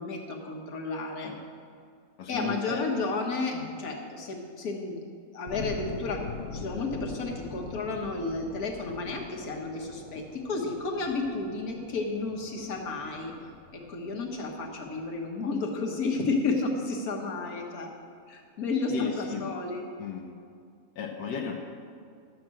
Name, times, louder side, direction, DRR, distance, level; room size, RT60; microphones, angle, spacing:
voice 1, 0.0-1.3 2.3-5.0 5.3-6.2 6.5-13.3 13.7-17.9 18.3-19.8, left 3 dB, 70° left, 0 dB, 1.8 m, -32 dB
voice 2, 2.2-2.9 3.5-3.7 18.9-19.5 20.0-20.3 21.0-21.5, left 5 dB, 90° left, 0 dB, 1.4 m, -34 dB
sound 1, 5.5-16.2, left 4 dB, 50° left, 1.1 m, -43 dB
12.0 x 6.0 x 7.5 m, 2.3 s
omnidirectional pair, 1.6 m